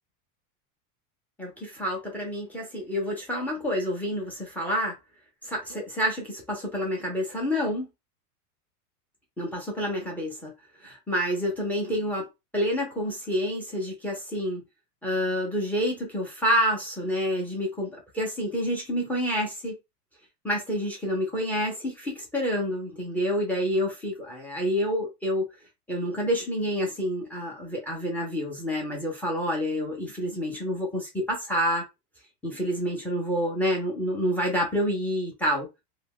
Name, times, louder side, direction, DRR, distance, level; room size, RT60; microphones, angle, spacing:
voice 1, 1.4-5.0 5.4-7.9 9.4-10.5 10.8-12.3 12.5-14.6 15.0-19.8 20.4-25.5 25.9-31.9 32.4-35.7, equal, 5° left, 0.3 m, -28 dB
2.3 x 2.1 x 3.4 m
supercardioid pair, 130°, 47 cm